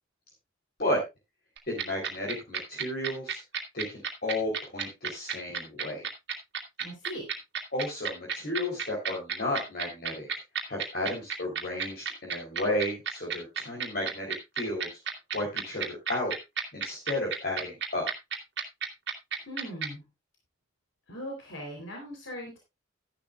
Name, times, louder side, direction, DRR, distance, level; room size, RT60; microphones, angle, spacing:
sound 1, 1.6-19.9, right 8 dB, 60° right, 2.3 m, -31 dB
voice 1, 1.7-3.4 3.7-6.0 7.7-10.3 10.7-14.9 15.3-16.4 16.7-18.0, left 1 dB, 50° left, -2 dB, 3.7 m, -33 dB
voice 2, 6.8-7.3 19.5-20.0 21.1-22.6, equal, 75° left, 1 dB, 3.8 m, -39 dB
14.0 x 11.0 x 2.4 m, 0.23 s
head